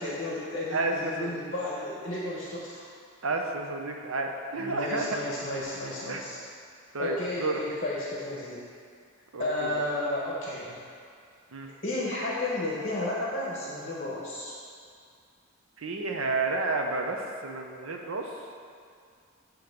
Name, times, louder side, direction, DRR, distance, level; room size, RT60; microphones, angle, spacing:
voice 1, 0.0-2.9 4.6-6.4 7.0-8.6 9.4-10.8 11.8-14.5, left 1 dB, 40° left, -5 dB, 1.1 m, -32 dB
voice 2, 0.7-1.3 3.2-5.2 6.1-6.2 6.9-7.6 9.3-9.7 11.5-11.7 15.8-18.3, right 3 dB, 80° right, 2 dB, 0.7 m, -31 dB
8.5 x 3.1 x 6.5 m, 2.3 s
head